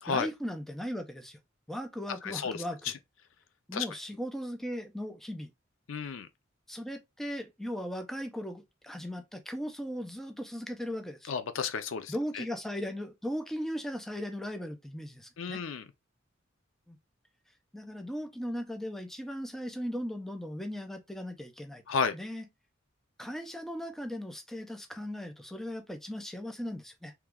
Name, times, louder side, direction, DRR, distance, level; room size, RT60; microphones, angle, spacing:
voice 1, 0.1-1.4 1.7-2.9 3.7-5.5 6.7-11.3 12.1-15.6 16.9-17.0 17.7-21.8 22.1-22.4 23.2-27.1, equal, ahead, 0.5 m, -38 dB
voice 2, 2.2-2.6 3.7-3.9 5.9-6.3 11.3-12.4 15.4-15.8 21.9-22.2, left 5 dB, 80° left, 0.5 m, -32 dB
3.0 x 2.3 x 3.5 m
head